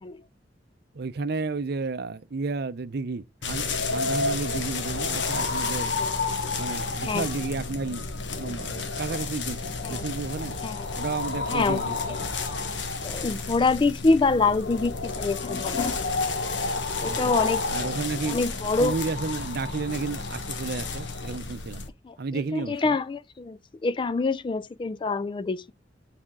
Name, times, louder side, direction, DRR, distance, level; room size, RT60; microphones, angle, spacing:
voice 1, 0.9-5.9 6.5-8.1 8.3-10.6 10.9-12.3 17.0-17.4 17.7-18.4 18.8-21.8 22.2-23.0, right 4 dB, 60° right, 0.6 m, -32 dB
sound 1, 3.4-21.9, left 4 dB, 75° left, 1.1 m, -30 dB
voice 2, 10.6-10.9 11.5-12.2 13.0-16.0 17.0-17.6 18.2-19.0 22.0-25.7, left 3 dB, 25° left, 0.3 m, -26 dB
8.8 x 5.0 x 3.6 m
head